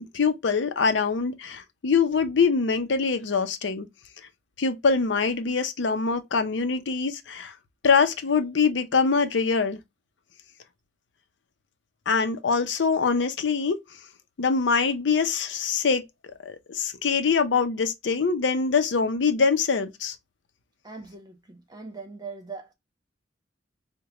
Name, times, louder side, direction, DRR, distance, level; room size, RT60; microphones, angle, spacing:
voice 1, 0.1-3.9 4.6-7.5 7.8-9.8 12.1-13.8 14.4-16.1 16.4-20.1, left 5 dB, 90° left, 0.6 m, -24 dB
voice 2, 20.8-22.7, right 4 dB, 20° right, 1.0 m, -40 dB
4.8 x 2.2 x 2.9 m
head